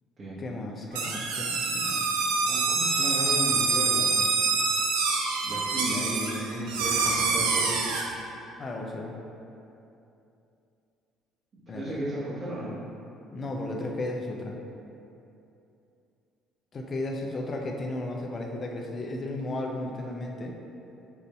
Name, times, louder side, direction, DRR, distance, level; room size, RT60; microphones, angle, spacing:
voice 1, 0.4-2.2 8.6-9.1 11.7-12.0 13.3-14.6 16.7-20.6, left 2 dB, 40° left, 1 dB, 0.6 m, -34 dB
sound 1, 0.9-8.0, right 4 dB, 90° right, 0.4 m, -26 dB
voice 2, 2.4-4.2 5.4-7.9 11.5-12.7, equal, 50° right, -11 dB, 1.1 m, -34 dB
5.5 x 2.7 x 3.3 m, 2.8 s
supercardioid pair, 65°, 0 cm